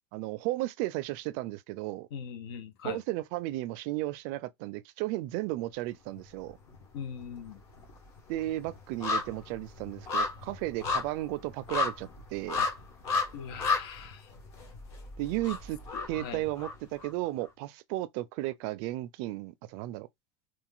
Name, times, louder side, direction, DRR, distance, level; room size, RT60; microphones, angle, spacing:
voice 1, 0.1-2.1 2.8-6.6 8.3-12.6 15.2-15.8 16.1-20.1, right 17 dB, 55° right, 0.4 m, -34 dB
voice 2, 2.1-3.0 6.9-7.6 12.6-12.7 13.3-14.3 15.9-16.4, left 7 dB, 85° left, 0.7 m, -40 dB
sound 1, 6.1-6.8 7.1-17.1 17.4-17.5, left 4 dB, 50° left, 1.2 m, -34 dB
2.4 x 2.3 x 3.7 m
cardioid pair, 165°, 13 cm